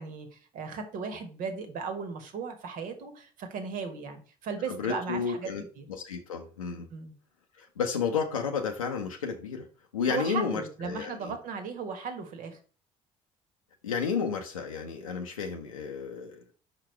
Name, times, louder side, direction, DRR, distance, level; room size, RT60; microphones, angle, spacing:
voice 1, 0.0-5.5 5.8-5.9 6.9-7.1 10.1-12.6, right 5 dB, 50° right, 7 dB, 1.5 m, -36 dB
voice 2, 4.7-5.6 5.9-6.9 7.6-9.7 9.9-11.4 13.8-16.4, left 6 dB, 80° left, 2 dB, 0.7 m, -32 dB
5.7 x 4.9 x 4.5 m, 0.40 s
figure-of-eight pair, 55°, 17 cm